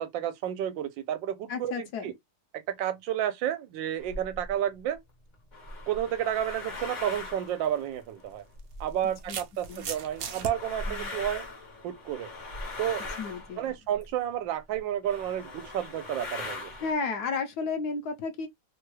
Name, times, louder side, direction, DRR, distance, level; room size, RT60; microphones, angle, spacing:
voice 1, 0.0-2.1 2.7-5.0 5.9-8.4 8.8-11.4 11.8-12.3 12.8-13.0 13.6-16.7, right 10 dB, 85° right, 1.3 m, -31 dB
voice 2, 1.5-2.1 9.3-9.4 9.7-9.9 10.9-11.1 13.2-13.7 16.8-18.5, left 4 dB, 65° left, 1.0 m, -33 dB
sound 1, 4.0-4.5 5.3-9.2 9.7-14.3 14.7-14.8 15.0-16.9, left 2 dB, 40° left, 0.6 m, -40 dB
sound 2, 7.3-7.5 8.6-10.5, right 6 dB, 65° right, 0.9 m, -37 dB
3.4 x 2.2 x 3.0 m
omnidirectional pair, 2.0 m